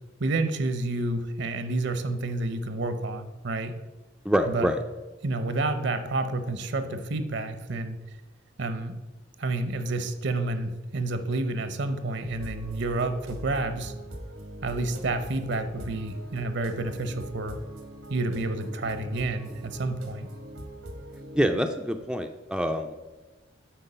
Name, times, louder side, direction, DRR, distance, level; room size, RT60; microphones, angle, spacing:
voice 1, 0.2-3.7 4.5-4.7 5.2-8.0 8.6-9.0 9.4-13.9 14.6-17.6 18.1-20.3, right 2 dB, 60° right, 9 dB, 0.7 m, -29 dB
voice 2, 4.2-4.8 21.3-22.9, equal, 5° right, 5 dB, 0.4 m, -26 dB
sound 1, 12.2-21.4, right 1 dB, 90° right, 1.4 m, -42 dB
9.1 x 4.4 x 5.6 m, 1.1 s
head